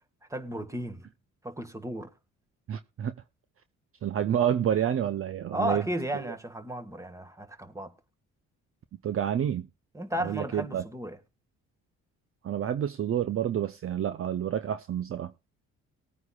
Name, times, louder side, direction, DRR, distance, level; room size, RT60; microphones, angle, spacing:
voice 1, 0.3-1.1 1.4-2.1 5.5-7.9 9.9-11.2, right 1 dB, 10° right, 1.7 m, -34 dB
voice 2, 2.7-3.1 4.0-5.8 6.2-6.3 9.0-9.7 10.2-10.8 12.4-15.3, right 10 dB, 45° right, 0.6 m, -29 dB
19.5 x 9.4 x 2.4 m
cardioid pair, 90°, 30 cm